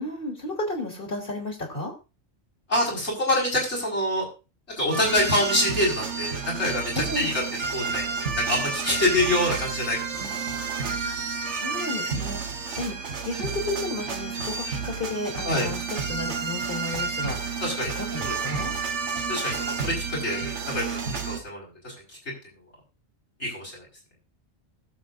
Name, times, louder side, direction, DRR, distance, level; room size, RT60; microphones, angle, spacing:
voice 1, 0.0-1.9 6.9-7.3 11.0-18.7, left 2 dB, 55° left, 2 dB, 3.1 m, -33 dB
voice 2, 2.7-4.3 4.8-7.3 7.7-10.1 15.5-15.7 17.6-17.9 18.3-18.4 19.3-21.9 23.4-23.9, left 1 dB, 80° left, -3 dB, 5.4 m, -26 dB
sound 1, 4.9-21.4, right 5 dB, 85° right, 1.5 m, -30 dB
20.0 x 7.5 x 2.6 m, 0.30 s
omnidirectional pair, 1.2 m